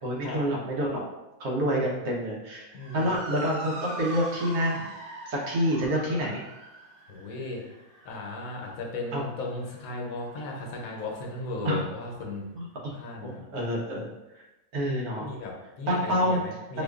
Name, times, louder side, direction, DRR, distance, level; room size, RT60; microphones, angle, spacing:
voice 1, 0.0-1.0 1.4-2.7 2.9-4.9 5.3-6.4 9.1-9.2 11.6-11.8 12.5-12.9 13.2-14.4 14.7-15.3 15.9-16.4 16.7-16.8, equal, 80° right, -3 dB, 1.4 m, -28 dB
voice 2, 2.7-3.1 6.2-6.3 7.1-7.6 8.0-12.5 12.9-13.5 15.2-16.8, left 2 dB, 70° left, 0 dB, 1.1 m, -36 dB
Motor vehicle (road) / Siren, 2.7-11.3, right 2 dB, 60° right, 0.9 m, -43 dB
4.8 x 2.3 x 2.4 m, 0.98 s
omnidirectional pair, 1.6 m